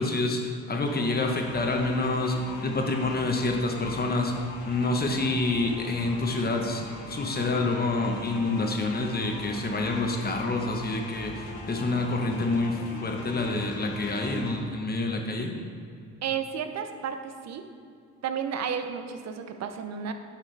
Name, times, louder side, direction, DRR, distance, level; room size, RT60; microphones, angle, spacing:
voice 1, 0.0-2.4 2.6-4.3 4.7-15.5, left 2 dB, 30° left, 2 dB, 1.1 m, -27 dB
sound 1, 0.9-14.6, left 2 dB, 80° left, 1.3 m, -41 dB
voice 2, 16.2-17.6 18.2-20.1, right 7 dB, 60° right, 8 dB, 0.7 m, -32 dB
10.5 x 5.7 x 3.4 m, 2.4 s
cardioid pair, 90°, 30 cm